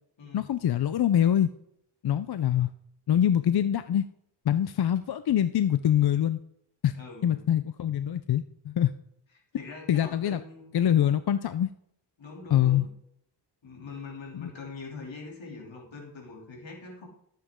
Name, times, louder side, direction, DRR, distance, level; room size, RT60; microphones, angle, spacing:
voice 1, 0.3-1.5 2.0-2.7 3.1-4.1 4.5-6.4 6.8-6.9 7.2-8.9 9.9-10.4 10.7-11.7 12.5-12.9 14.3-14.5, left 10 dB, 60° left, 12 dB, 0.5 m, -24 dB
voice 2, 6.9-7.4 9.5-10.7 11.0-11.2 12.2-12.9 13.6-17.1, left 4 dB, 85° left, -1 dB, 3.1 m, -43 dB
13.0 x 7.6 x 3.7 m, 0.73 s
wide cardioid pair, 85°, 44 cm